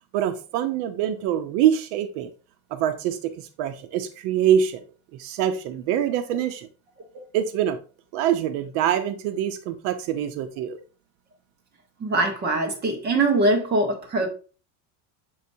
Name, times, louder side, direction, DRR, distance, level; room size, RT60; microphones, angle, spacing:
voice 1, 0.1-2.3 2.7-4.8 5.1-6.7 7.3-7.8 8.1-10.8, right 10 dB, 80° right, 0.8 m, -24 dB
voice 2, 12.0-14.3, right 2 dB, 20° right, 1.2 m, -22 dB
6.9 x 5.0 x 2.7 m
cardioid pair, 175°, 44 cm